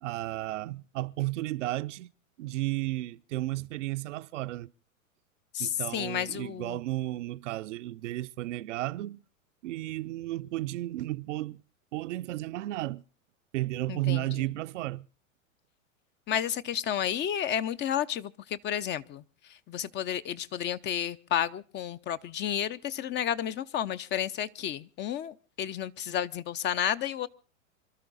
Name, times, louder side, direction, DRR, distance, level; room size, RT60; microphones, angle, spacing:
voice 1, 0.0-2.1 2.4-4.7 5.6-9.2 9.6-11.6 11.9-13.0 13.5-15.1, right 17 dB, 65° right, 0.7 m, -33 dB
voice 2, 5.5-6.8 13.9-14.4 16.3-27.3, left 10 dB, 25° left, 0.7 m, -32 dB
26.0 x 13.0 x 4.1 m
hypercardioid pair, 105°, 40 cm